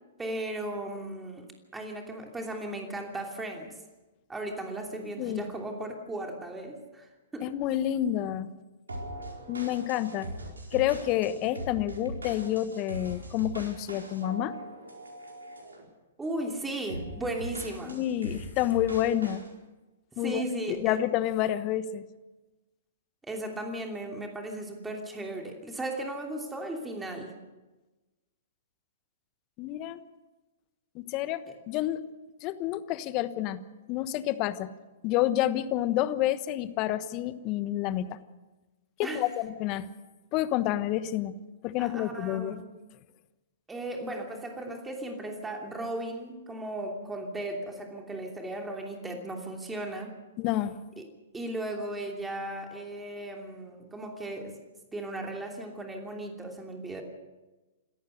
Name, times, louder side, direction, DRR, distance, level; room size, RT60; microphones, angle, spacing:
voice 1, 0.2-1.5 1.7-3.7 4.3-7.5 16.2-18.0 20.2-21.0 23.2-27.3 31.5-31.6 39.0-39.2 41.8-42.7 43.7-50.1 51.0-51.1 51.3-54.6 54.9-57.0, right 1 dB, 10° right, 2 dB, 2.9 m, -36 dB
voice 2, 7.4-8.5 9.5-10.3 10.7-14.5 17.9-19.4 20.2-22.1 29.6-30.0 30.9-31.4 31.7-32.0 32.4-33.6 33.9-34.7 35.0-38.2 39.0-39.9 40.3-41.3 41.6-42.6 50.4-50.8, left 13 dB, 35° left, 13 dB, 1.2 m, -29 dB
sound 1, 8.9-15.8 16.2-16.5 16.9-19.5, right 1 dB, 80° right, 4.5 m, -41 dB
27.5 x 14.0 x 6.6 m, 1.1 s
figure-of-eight pair, 115°, 0 cm